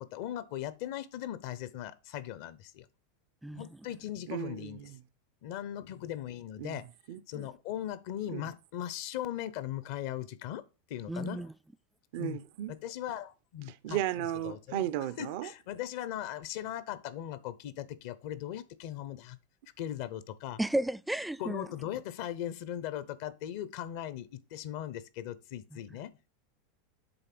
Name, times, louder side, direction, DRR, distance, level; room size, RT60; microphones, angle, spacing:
voice 1, 0.0-2.9 3.5-4.9 5.4-6.9 7.3-10.6 10.9-11.5 12.2-12.4 12.7-14.0 14.4-14.8 15.2-19.4 19.8-20.6 21.4-26.1, left 11 dB, 65° left, 0.7 m, -39 dB
voice 2, 4.3-5.0 6.6-6.8 7.1-7.2 8.3-8.4 12.1-12.7 13.8-15.5, right 12 dB, 65° right, 0.5 m, -35 dB
voice 3, 11.1-11.5 20.6-21.7, right 1 dB, 5° right, 0.3 m, -33 dB
7.9 x 3.3 x 6.0 m
hypercardioid pair, 115°, 0 cm